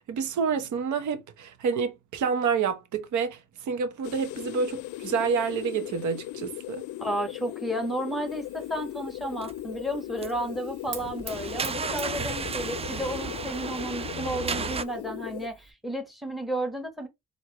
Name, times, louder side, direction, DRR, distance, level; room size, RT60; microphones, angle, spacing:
voice 1, 0.1-3.4 3.7-6.8, right 6 dB, 75° right, 0.9 m, -28 dB
sound 1, 4.0-15.5, left 15 dB, 75° left, 0.5 m, -38 dB
voice 2, 7.0-17.1, right 1 dB, ahead, 1.3 m, -32 dB
Fire, 8.3-15.7, right 4 dB, 40° right, 1.4 m, -48 dB
sound 2, 9.4-9.6 10.2-10.6 10.9-14.8, right 5 dB, 20° right, 0.4 m, -33 dB
4.5 x 2.8 x 2.9 m
cardioid pair, 90°, 30 cm